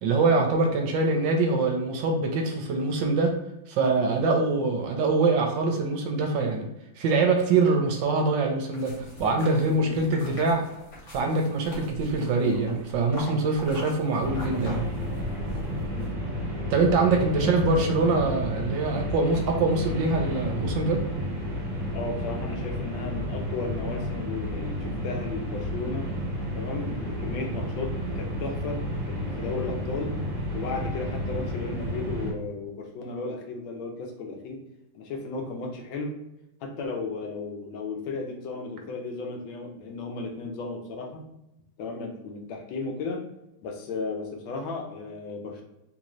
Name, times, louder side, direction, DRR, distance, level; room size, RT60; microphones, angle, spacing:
voice 1, 0.0-3.3 3.7-6.7 7.0-8.9 9.2-10.6 11.1-14.8 16.7-21.0, right 3 dB, 70° right, 2 dB, 1.2 m, -24 dB
sound 1, 8.7-16.1, left 1 dB, 45° left, 1.2 m, -42 dB
sound 2, 14.2-32.3, equal, 35° right, 0.7 m, -31 dB
voice 2, 21.9-26.1 26.5-28.8 29.1-30.2 30.5-34.6 34.9-36.1 36.6-41.2 41.8-43.2 43.6-45.6, left 3 dB, 75° left, 2 dB, 1.5 m, -34 dB
3.9 x 2.8 x 3.0 m, 0.88 s
omnidirectional pair, 2.2 m